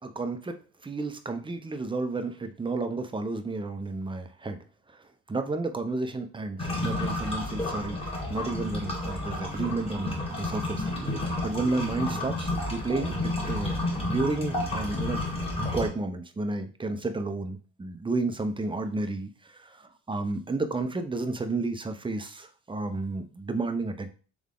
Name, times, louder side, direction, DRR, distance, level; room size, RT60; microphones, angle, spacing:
voice 1, 0.0-4.6 5.3-8.0 8.3-11.0 11.4-15.4 15.7-24.1, right 3 dB, 15° right, 7 dB, 0.7 m, -32 dB
sound 1, 6.6-15.9, left 1 dB, 15° left, 1.6 m, -31 dB
3.7 x 3.5 x 3.7 m, 0.37 s
supercardioid pair, 75°, 33 cm